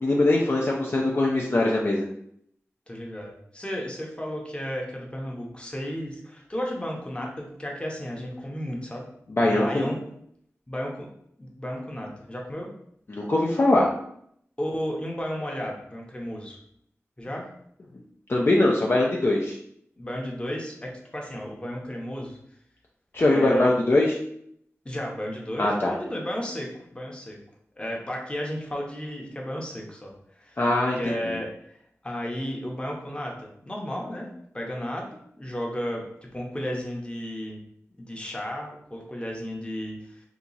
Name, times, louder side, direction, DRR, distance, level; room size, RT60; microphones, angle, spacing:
voice 1, 0.0-2.1 9.3-9.9 13.1-13.9 18.3-19.6 23.1-24.1 25.6-25.9 30.6-31.1, left 2 dB, 45° left, -2 dB, 0.5 m, -22 dB
voice 2, 2.9-9.1 9.4-10.0 10.7-11.1 11.4-12.7 14.6-16.6 17.2-17.5 20.0-22.4 23.3-23.7 24.8-27.4 27.8-30.1 30.4-30.6 31.0-31.5 32.0-37.6 38.0-40.2, equal, 20° left, -1 dB, 0.8 m, -33 dB
2.8 x 2.3 x 3.9 m, 0.69 s
wide cardioid pair, 80°, 5 cm